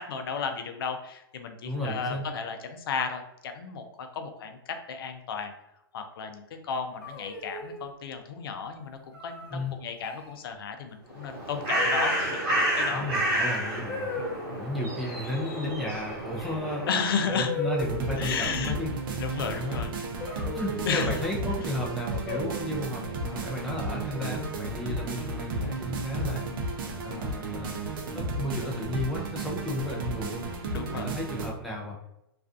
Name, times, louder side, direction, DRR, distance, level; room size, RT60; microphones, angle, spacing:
voice 1, 0.0-5.5 5.9-13.4 14.2-14.6 16.9-17.5 18.2-18.7 19.2-20.2 20.9-21.2 26.1-26.2 27.1-27.2 30.7-31.1, left 6 dB, 70° left, 6 dB, 0.4 m, -33 dB
voice 2, 1.6-2.2 9.5-9.7 12.9-14.1 14.5-16.9 17.2-18.9 19.5-19.8 20.5-26.5 27.0-27.8 28.1-30.4 30.8-32.0, left 1 dB, ahead, -3 dB, 0.4 m, -33 dB
sound 1, 7.0-7.9 9.1-9.5 10.0-10.3 11.8-12.4 13.9-14.5 16.4-16.5 17.3-18.3 20.2-21.3 22.3-22.9 24.1-24.7, left 2 dB, 35° left, 1.2 m, -36 dB
Bird, 11.1-17.2, right 1 dB, 30° right, 1.3 m, -30 dB
sound 2, 17.8-31.5, right 2 dB, 60° right, 0.5 m, -33 dB
2.4 x 2.2 x 2.4 m, 0.84 s
hypercardioid pair, 140°, 13 cm